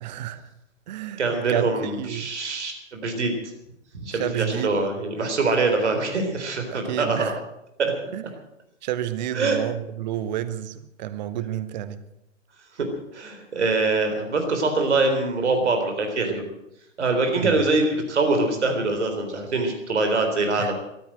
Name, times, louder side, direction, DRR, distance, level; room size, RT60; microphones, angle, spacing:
voice 1, 0.0-0.5 0.9-2.3 4.1-4.8 6.7-7.4 8.1-8.2 8.8-12.0 17.4-17.6 20.6-20.7, right 11 dB, 35° right, 14 dB, 1.0 m, -30 dB
voice 2, 1.2-3.3 4.0-7.3 7.8-7.9 9.3-9.6 12.8-12.9 13.1-16.4 17.0-20.7, right 3 dB, 60° right, 5 dB, 4.0 m, -24 dB
14.0 x 13.0 x 7.7 m, 0.84 s
figure-of-eight pair, 115°, 38 cm